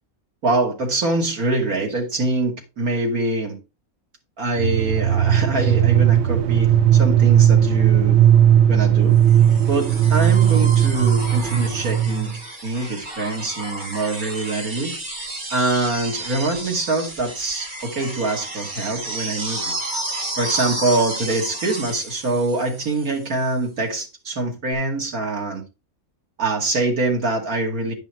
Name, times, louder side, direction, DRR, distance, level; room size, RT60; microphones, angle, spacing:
voice 1, 0.4-3.6 4.4-8.2 8.7-9.2 9.7-14.9 15.5-19.7 20.4-25.6 26.4-27.9, right 2 dB, 90° right, 2.8 m, -24 dB
sound 1, 4.6-12.4, right 10 dB, 60° right, 0.7 m, -16 dB
sound 2, 9.3-23.3 24.7-24.8, right 2 dB, 35° right, 1.9 m, -32 dB
10.0 x 5.5 x 4.5 m
omnidirectional pair, 1.5 m